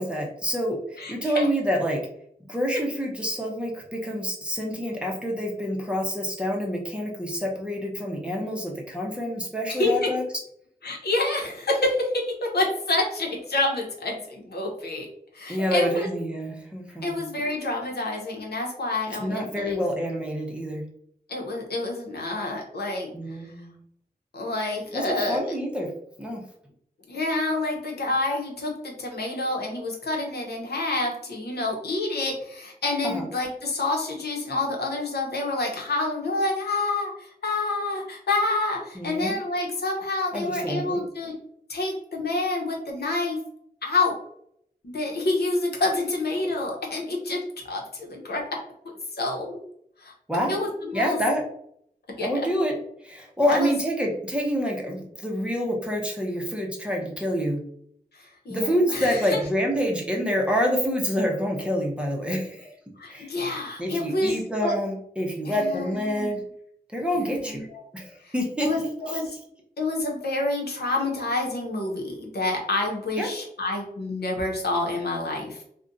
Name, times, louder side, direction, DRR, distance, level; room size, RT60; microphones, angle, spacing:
voice 1, 0.0-2.0 2.5-10.2 15.5-17.2 19.1-20.8 23.1-23.8 24.9-25.9 26.2-26.4 33.0-33.3 38.9-39.4 40.3-41.0 50.3-50.6 50.9-51.4 52.2-52.7 53.0-57.6 58.5-62.7 63.1-63.3 63.8-66.4 66.9-67.6 67.9-68.7 69.1-69.2 73.2-73.3, equal, 5° right, -1 dB, 0.7 m, -27 dB
voice 2, 1.0-1.5 9.7-10.1 10.8-15.1 15.3-16.1 17.0-19.8 21.3-23.1 24.3-25.4 27.1-41.4 41.7-43.4 43.8-44.1 44.8-47.4 47.7-48.4 49.1-49.6 50.0-50.1 50.5-51.2 52.2-52.3 53.4-53.7 58.1-59.4 63.0-64.4 64.6-64.7 65.4-66.4 67.3-67.8 68.2-68.3 68.6-69.3 69.8-75.6, left 2 dB, 80° left, 0 dB, 0.8 m, -28 dB
2.5 x 2.2 x 3.8 m, 0.70 s
wide cardioid pair, 75°, 17 cm